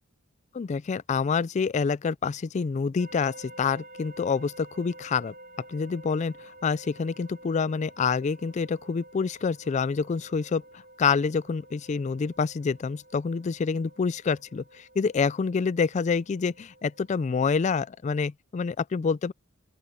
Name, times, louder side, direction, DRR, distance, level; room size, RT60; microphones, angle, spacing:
voice 1, 0.5-5.3 5.7-10.6 11.0-19.3, left 5 dB, 35° left, 0.3 m, -27 dB
sound 1, 3.0-18.0, right 1 dB, 50° right, 4.8 m, -51 dB
open air
head